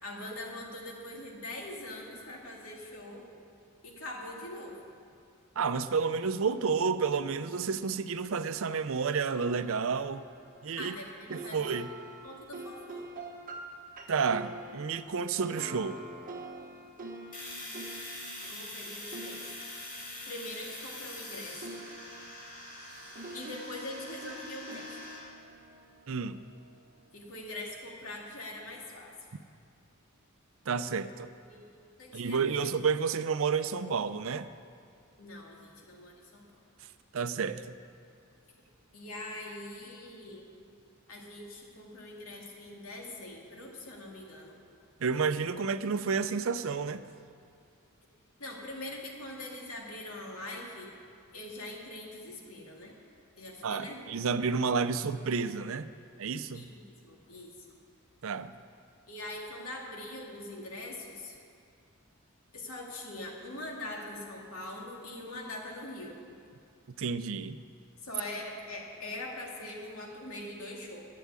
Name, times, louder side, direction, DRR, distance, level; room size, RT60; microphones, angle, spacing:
voice 1, 0.0-3.3 3.8-4.8 10.8-11.7 12.2-13.1 18.5-19.5 20.3-21.8 23.3-25.0 27.1-29.3 31.5-32.7 35.2-36.5 38.9-40.5 41.1-44.6 48.4-50.9 51.3-53.0 53.4-54.0 56.5-57.5 59.1-61.4 62.5-66.2 68.0-71.1, left 1 dB, 80° left, -1 dB, 2.6 m, -43 dB
voice 2, 5.6-10.3 10.6-11.0 11.3-11.9 14.1-16.0 26.1-26.4 30.7-31.3 32.1-34.5 37.1-37.8 45.0-47.0 53.6-55.9 56.2-56.7 58.2-58.5 67.0-67.6, right 5 dB, 70° right, 12 dB, 0.5 m, -30 dB
sound 1, 9.3-21.3 21.6-26.8, right 2 dB, 40° right, 1.1 m, -46 dB
Domestic sounds home sounds, 17.3-25.2, left 1 dB, 40° left, 4.3 m, -44 dB
11.5 x 8.6 x 9.6 m, 2.4 s
head